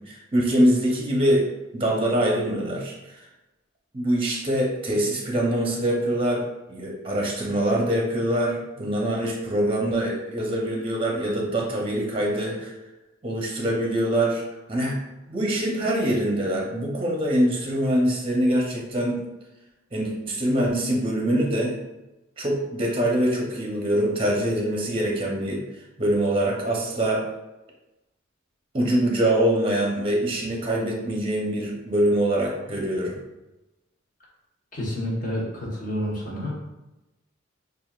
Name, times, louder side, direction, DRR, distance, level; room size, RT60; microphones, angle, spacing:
voice 1, 0.0-3.1 3.9-12.7 13.2-14.4 14.7-15.0 15.3-19.2 19.9-21.8 22.4-25.6 26.0-27.2 28.7-33.2, right 1 dB, 25° right, -2 dB, 0.7 m, -24 dB
voice 2, 34.7-36.6, equal, 40° left, -5 dB, 1.2 m, -29 dB
6.1 x 2.5 x 2.4 m, 1.0 s
head